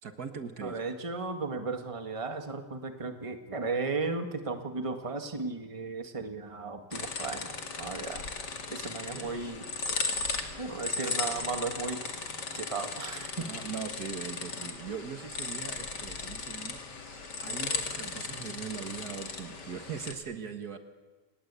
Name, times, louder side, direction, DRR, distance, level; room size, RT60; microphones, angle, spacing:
voice 1, 0.0-0.9 9.1-9.4 13.4-20.8, right 6 dB, 60° right, 8 dB, 2.0 m, -41 dB
voice 2, 0.6-7.5 7.8-8.3 8.7-9.7 10.6-12.0 12.5-13.5, right 4 dB, 20° right, 6 dB, 1.8 m, -35 dB
sound 1, 6.9-20.1, left 4 dB, 70° left, 3.0 m, -36 dB
29.5 x 19.5 x 8.4 m, 1.3 s
omnidirectional pair, 1.9 m